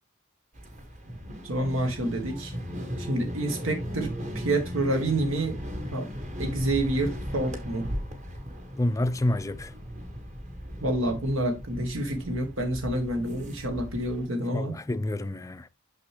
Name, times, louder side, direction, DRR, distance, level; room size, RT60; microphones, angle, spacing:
sound 1, 0.5-14.3, equal, 35° right, 1.2 m, -37 dB
voice 1, 1.4-2.6 3.0-5.6 5.9-6.1 6.4-7.9 10.8-14.8, right 1 dB, 80° right, 1.3 m, -28 dB
voice 2, 8.8-9.7 14.5-15.7, left 1 dB, 15° left, 0.4 m, -28 dB
6.1 x 6.0 x 3.2 m
head